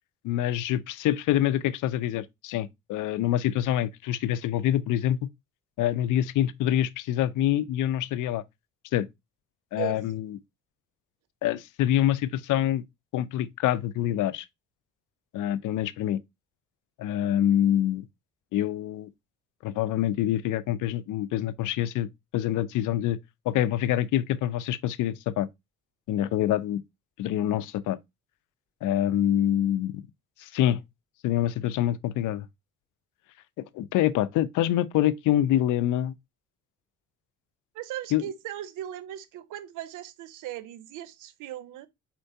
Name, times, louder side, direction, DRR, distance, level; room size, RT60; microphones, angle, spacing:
voice 1, 0.2-5.2 5.8-8.4 8.9-9.1 9.7-10.3 11.4-12.8 13.1-14.4 15.3-16.2 17.0-18.1 18.5-19.1 19.6-22.1 22.3-23.2 23.5-25.5 26.1-26.8 27.2-28.0 28.8-29.9 30.4-30.8 31.2-32.5 33.7-36.1 38.1-38.2, left 12 dB, 85° left, 0.6 m, -26 dB
voice 2, 37.7-41.9, right 13 dB, 85° right, 0.7 m, -38 dB
4.4 x 4.4 x 2.6 m
cardioid pair, 90°, 30 cm